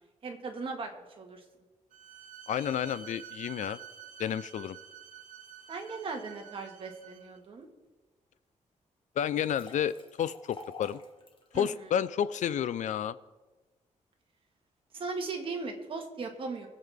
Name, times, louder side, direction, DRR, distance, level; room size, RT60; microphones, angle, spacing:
voice 1, 0.2-0.9 1.2-1.4 5.7-7.7 11.5-11.9 14.9-16.7, right 4 dB, 45° right, 2 dB, 1.7 m, -38 dB
Bowed string instrument, 1.9-7.4, right 9 dB, 80° right, 1.0 m, -49 dB
voice 2, 2.5-3.8 4.2-4.8 9.2-11.0 11.5-13.2, left 9 dB, 70° left, 16 dB, 0.5 m, -31 dB
sound 1, 9.2-11.7, left 3 dB, 40° left, 1.5 m, -49 dB
22.5 x 7.6 x 3.6 m, 1.2 s
wide cardioid pair, 170°, 13 cm